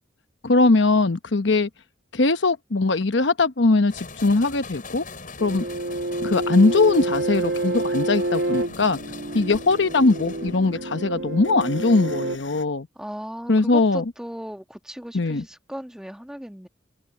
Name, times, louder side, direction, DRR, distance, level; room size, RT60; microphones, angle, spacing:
voice 1, 0.4-1.7 2.1-5.0 5.4-5.6 6.2-9.0 9.3-12.9 13.5-14.0 15.1-15.4, left 3 dB, 70° left, 1.0 m, -20 dB
sound 1, 3.9-11.0, left 4 dB, 45° left, 7.6 m, -41 dB
sound 2, 5.4-12.4, right 2 dB, 70° right, 2.3 m, -28 dB
sound 3, 7.0-12.7, left 3 dB, 90° left, 4.8 m, -45 dB
voice 2, 12.9-16.7, equal, 5° right, 1.5 m, -37 dB
head